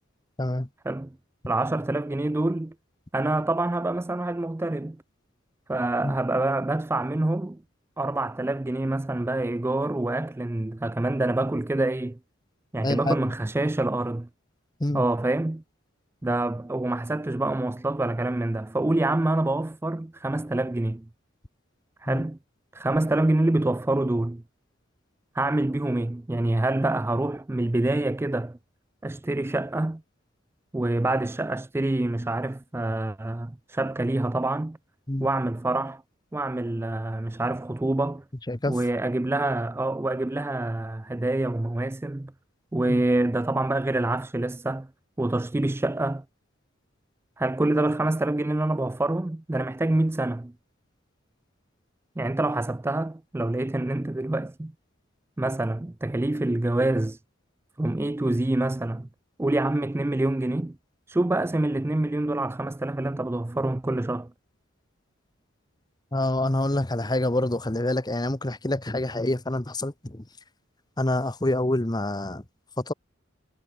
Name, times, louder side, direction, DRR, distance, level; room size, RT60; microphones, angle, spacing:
voice 1, 1.5-2.7 3.1-5.0 5.7-7.6 8.0-12.2 12.7-14.3 14.9-15.6 16.2-21.0 22.0-22.4 22.7-24.4 25.3-28.6 29.0-30.0 30.7-34.8 35.2-36.0 36.3-38.2 38.7-42.3 42.7-44.9 45.2-46.2 47.4-50.5 52.2-54.7 55.4-57.2 57.8-59.1 59.4-60.8 61.1-64.3, right 2 dB, 10° right, 0.4 m, -26 dB
voice 2, 12.8-13.3 14.8-15.0 22.1-22.2 35.1-35.3 38.5-38.8 42.9-43.0 66.1-70.2 71.0-72.4 72.8-72.9, left 1 dB, 20° left, 1.1 m, -26 dB
head